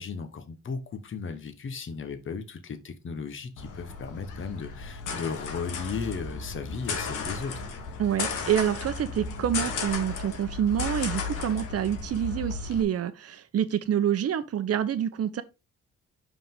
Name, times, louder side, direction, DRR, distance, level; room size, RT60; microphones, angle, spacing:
voice 1, 0.0-7.7, left 5 dB, 40° left, 1.2 m, -35 dB
sound 1, 3.6-12.8, left 4 dB, 90° left, 1.4 m, -34 dB
voice 2, 8.0-15.4, right 9 dB, 55° right, 0.9 m, -27 dB
5.8 x 5.0 x 3.8 m
cardioid pair, 90°, 30 cm